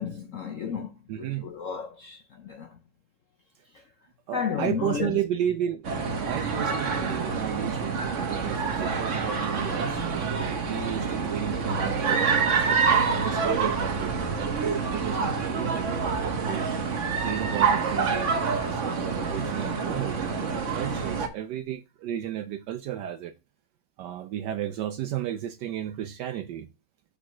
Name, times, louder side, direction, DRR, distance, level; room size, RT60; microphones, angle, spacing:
voice 1, 0.0-0.9 1.2-2.8 3.7-3.8 4.3-5.2, left 7 dB, 60° left, 0.8 m, -32 dB
voice 2, 1.1-1.4 4.3-5.9 6.3-14.1 14.4-16.7 17.2-23.3 24.0-26.7, right 11 dB, 75° right, 1.1 m, -33 dB
sound 1, 5.8-21.3, right 5 dB, 45° right, 1.3 m, -27 dB
6.8 x 3.9 x 6.2 m
omnidirectional pair, 2.1 m